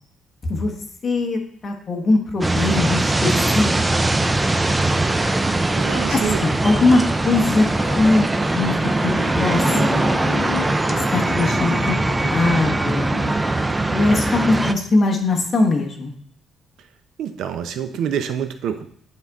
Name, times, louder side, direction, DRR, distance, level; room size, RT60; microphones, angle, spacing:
voice 1, 1.0-3.7 6.1-7.7 7.9-8.3 8.5-10.0 11.1-12.0 12.3-13.1 13.9-16.1, left 2 dB, 30° left, 2 dB, 1.2 m, -21 dB
sound 1, 2.4-14.7, right 2 dB, 10° right, 0.3 m, -21 dB
sound 2, 5.5-6.0 7.8-8.8 9.2-13.3, left 12 dB, 70° left, 0.4 m, -34 dB
voice 2, 5.8-6.5 17.2-18.9, right 8 dB, 70° right, 9 dB, 0.5 m, -26 dB
9.5 x 4.0 x 3.5 m, 0.64 s
cardioid pair, 150°, 0 cm